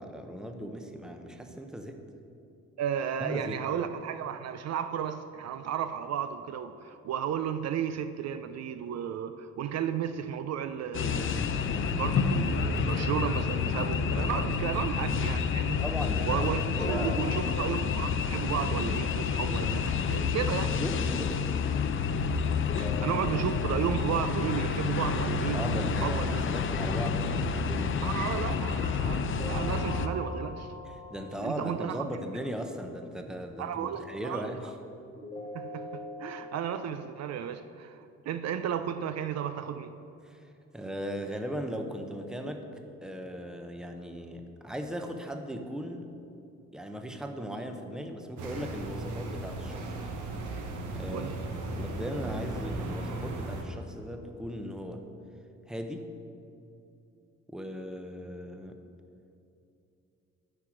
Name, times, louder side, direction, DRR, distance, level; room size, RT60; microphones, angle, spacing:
voice 1, 0.0-2.0 3.2-3.6 15.8-17.6 20.6-21.4 25.5-28.2 30.9-34.7 40.2-42.7 43.0-46.1 46.7-50.1 50.9-55.0 55.7-56.1 57.5-58.8, equal, ahead, 5 dB, 0.7 m, -38 dB
voice 2, 2.8-11.6 12.0-15.8 16.3-20.7 22.8-26.4 28.0-30.7 31.4-32.1 33.6-34.5 35.5-39.9 51.1-51.4, right 9 dB, 60° right, 10 dB, 0.4 m, -33 dB
sound 1, 10.9-30.1, left 5 dB, 45° left, 0.5 m, -29 dB
sound 2, 16.7-19.7 22.6-25.7 29.4-32.6 35.2-36.6, left 2 dB, 20° left, 1.5 m, -44 dB
sound 3, 48.4-53.6, right 2 dB, 80° right, 1.1 m, -36 dB
8.7 x 4.7 x 6.0 m, 2.8 s
cardioid pair, 90°, 30 cm